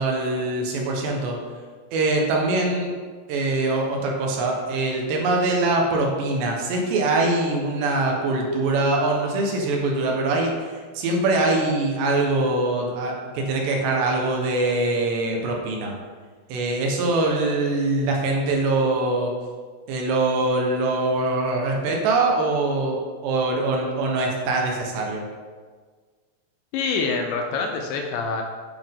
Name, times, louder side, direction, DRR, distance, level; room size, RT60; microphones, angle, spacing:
voice 1, 0.0-1.4 1.9-2.9 3.3-15.9 16.5-19.3 19.9-25.3, right 2 dB, 70° right, 0 dB, 2.9 m, -23 dB
voice 2, 26.7-28.4, left 4 dB, 85° left, 3 dB, 2.5 m, -25 dB
9.6 x 7.4 x 3.7 m, 1.5 s
omnidirectional pair, 5.9 m